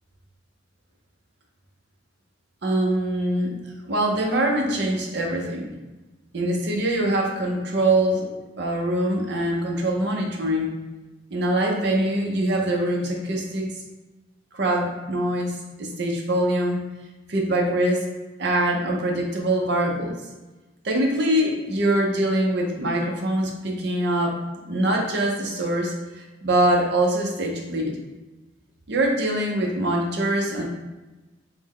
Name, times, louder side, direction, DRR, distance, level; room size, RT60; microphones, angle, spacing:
voice 1, 2.6-3.6 3.9-5.7 6.3-8.2 8.6-10.7 11.3-13.7 14.5-16.9 17.3-18.0 18.4-20.2 20.8-24.4 24.7-28.0 28.9-30.7, right 1 dB, 60° right, 0 dB, 0.6 m, -23 dB
3.4 x 2.1 x 3.5 m, 1.1 s
head